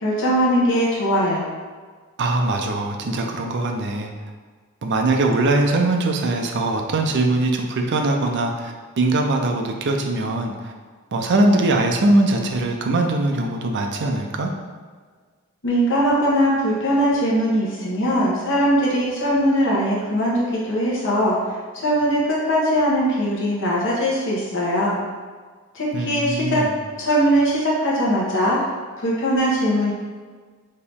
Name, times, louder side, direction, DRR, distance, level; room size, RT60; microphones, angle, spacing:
voice 1, 0.0-1.5 15.6-21.4 21.7-25.0 25.7-26.6 27.0-28.6 29.0-29.9, equal, 60° left, -5 dB, 1.2 m, -20 dB
voice 2, 2.2-4.3 4.8-10.7 11.1-14.5 25.9-26.8, right 2 dB, 55° right, 3 dB, 0.5 m, -21 dB
4.4 x 2.8 x 3.5 m, 1.5 s
head